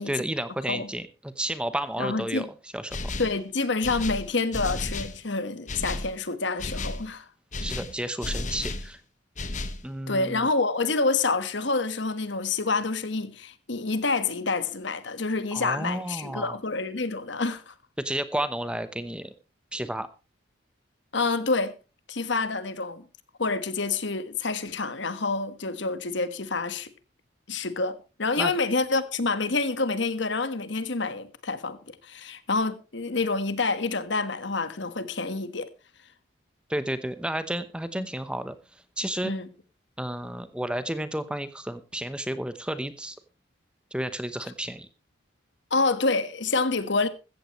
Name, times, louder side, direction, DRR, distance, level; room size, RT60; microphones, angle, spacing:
voice 1, 0.0-2.5 2.7-3.0 7.6-9.0 9.8-10.5 15.5-16.6 18.0-19.3 19.7-20.1 28.4-28.5 36.7-39.3 40.0-43.2 43.9-44.9, right 1 dB, 5° right, 0.8 m, -32 dB
voice 2, 2.0-2.5 3.2-7.3 10.1-17.7 21.1-21.7 22.1-23.0 23.4-26.9 27.5-35.7 39.2-39.5 45.7-47.1, left 3 dB, 65° left, 1.4 m, -27 dB
sound 1, 2.9-3.4 3.8-5.2 5.7-6.1 6.6-7.0 7.5-8.9 9.4-9.8, left 2 dB, 40° left, 1.3 m, -33 dB
15.0 x 14.5 x 3.1 m
head